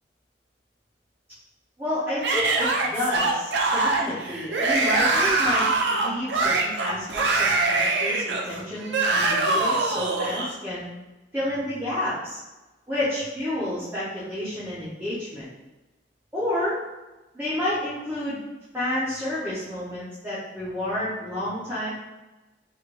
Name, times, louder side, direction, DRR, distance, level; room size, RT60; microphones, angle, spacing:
voice 1, 1.8-10.9 11.3-12.4 12.9-15.5 16.3-16.8 17.3-18.4 18.7-21.9, left 1 dB, 10° right, -11 dB, 0.7 m, -30 dB
Yell / Screaming, 2.2-10.5, right 3 dB, 75° right, 0.5 m, -23 dB
3.3 x 3.0 x 2.5 m, 1.1 s
head